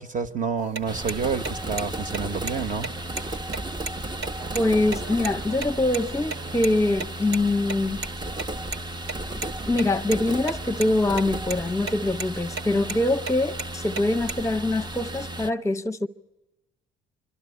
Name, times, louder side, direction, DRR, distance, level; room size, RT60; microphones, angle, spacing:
voice 1, 0.0-3.4, right 5 dB, 40° right, 1.1 m, -29 dB
sound 1, 0.6-5.7 5.9-6.0 6.3-6.4 6.6-6.7 7.0-7.1 7.3-7.4 7.7-8.8 9.0-9.5 9.8-10.5 10.8-11.2 11.5-11.9 12.2-12.3 12.6-13.0 13.3-14.4, right 3 dB, 70° right, 1.4 m, -32 dB
sound 2, 0.9-15.5, right 1 dB, 20° right, 0.8 m, -34 dB
sound 3, 4.4-7.2, right 8 dB, 85° right, 0.8 m, -45 dB
voice 2, 4.5-8.0 9.7-16.1, left 2 dB, 15° left, 0.8 m, -24 dB
28.0 x 12.5 x 9.7 m
supercardioid pair, 65°, 21 cm